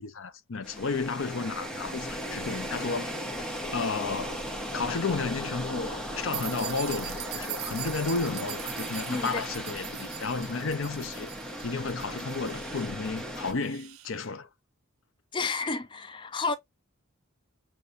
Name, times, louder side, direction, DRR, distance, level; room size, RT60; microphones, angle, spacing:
voice 1, 0.0-3.1 3.7-4.5 4.7-11.3 11.6-14.5, left 4 dB, 70° left, 0.6 m, -32 dB
sound 1, 0.6-13.5, equal, 5° left, 1.0 m, -37 dB
sound 2, 6.3-14.1, right 14 dB, 85° right, 0.6 m, -41 dB
voice 2, 9.1-9.4 15.3-16.5, left 4 dB, 20° left, 0.3 m, -31 dB
6.6 x 2.9 x 2.5 m
head